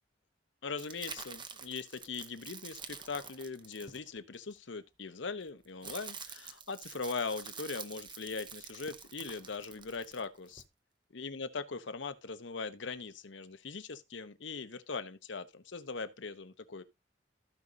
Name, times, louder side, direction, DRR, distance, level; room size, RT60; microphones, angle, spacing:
voice 1, 0.6-10.6 11.1-16.8, left 4 dB, 90° left, 0.9 m, -40 dB
sound 1, 0.8-4.5 5.4-10.7, right 6 dB, 25° right, 0.7 m, -47 dB
15.5 x 5.3 x 2.7 m
head